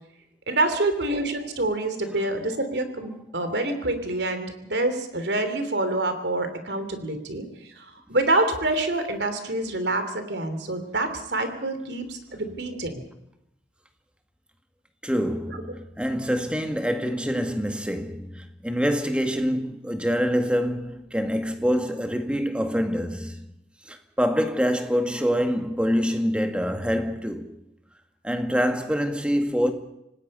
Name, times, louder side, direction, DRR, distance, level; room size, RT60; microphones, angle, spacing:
voice 1, 0.5-7.4 7.8-13.0, right 2 dB, 70° right, 3.1 m, -26 dB
voice 2, 15.0-23.4 23.8-27.5 28.2-29.7, equal, 5° right, 1.8 m, -25 dB
26.5 x 19.0 x 5.5 m
head